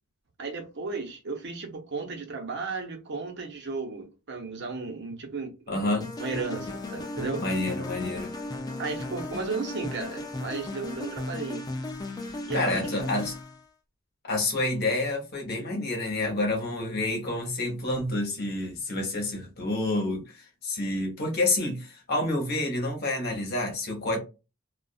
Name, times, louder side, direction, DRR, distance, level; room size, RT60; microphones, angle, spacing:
voice 1, 0.4-7.4 8.8-11.6 12.5-12.9, right 4 dB, 60° right, 0.8 m, -34 dB
voice 2, 5.7-6.1 7.4-8.3 12.3-13.3 14.2-24.2, left 2 dB, 50° left, 1.0 m, -29 dB
sound 1, 6.0-13.6, left 2 dB, 20° left, 0.3 m, -35 dB
2.5 x 2.3 x 2.3 m
head